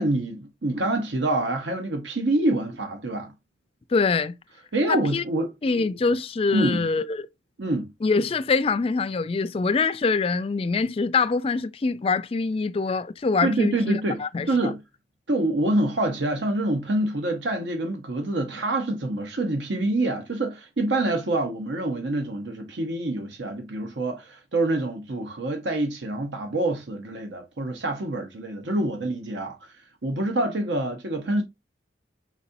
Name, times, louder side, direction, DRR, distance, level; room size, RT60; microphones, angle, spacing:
voice 1, 0.0-3.3 4.7-5.5 6.5-6.9 7.6-7.9 13.4-14.8 15.3-29.7 30.0-31.4, right 1 dB, 75° right, 0.9 m, -26 dB
voice 2, 3.9-4.3 4.9-5.2 5.6-7.3 8.0-14.5, left 4 dB, 30° left, 0.4 m, -24 dB
4.7 x 4.1 x 2.6 m
head